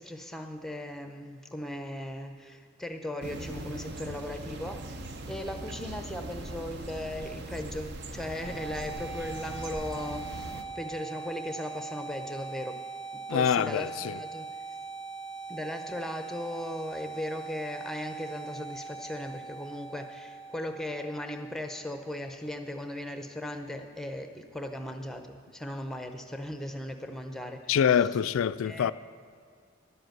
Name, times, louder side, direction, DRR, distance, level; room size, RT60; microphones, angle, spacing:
voice 1, 0.0-12.8 13.1-14.8 15.5-27.8 28.6-28.9, left 1 dB, ahead, 0.6 m, -38 dB
sound 1, 3.2-10.6, right 2 dB, 50° right, 0.7 m, -40 dB
sound 2, 8.2-22.2, right 4 dB, 25° right, 1.1 m, -41 dB
voice 2, 13.3-14.2 27.7-28.9, left 8 dB, 70° left, 0.3 m, -25 dB
11.0 x 7.8 x 7.7 m
head